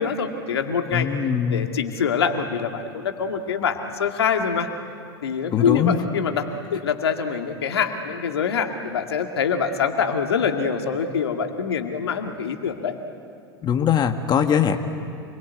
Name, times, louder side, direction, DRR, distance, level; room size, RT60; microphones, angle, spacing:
voice 1, 0.0-1.1 1.5-4.7 5.2-12.9, left 6 dB, 80° left, 5 dB, 2.1 m, -25 dB
voice 2, 0.9-1.7 5.5-6.0 13.6-14.8, left 8 dB, 35° left, 6 dB, 1.7 m, -21 dB
27.5 x 22.0 x 9.4 m, 2.4 s
hypercardioid pair, 90°, 13 cm